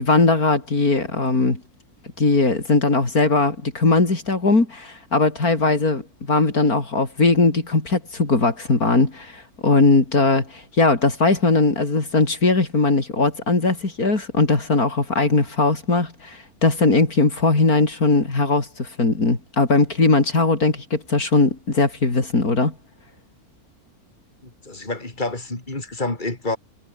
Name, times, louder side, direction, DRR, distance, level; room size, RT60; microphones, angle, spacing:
voice 1, 0.0-1.6 2.2-22.7, left 3 dB, 75° left, 4.5 m, -19 dB
voice 2, 24.4-26.6, left 2 dB, 30° left, 4.3 m, -28 dB
omnidirectional pair, 1.6 m